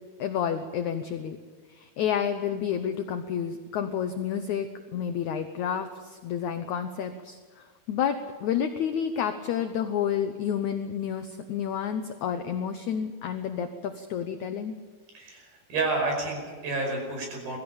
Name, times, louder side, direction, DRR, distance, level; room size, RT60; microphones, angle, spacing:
voice 1, 0.2-1.4 1.7-14.8, left 8 dB, 70° left, 8 dB, 1.9 m, -30 dB
voice 2, 15.1-17.6, right 3 dB, 75° right, 1 dB, 7.2 m, -30 dB
23.0 x 14.5 x 8.8 m, 1.5 s
omnidirectional pair, 4.4 m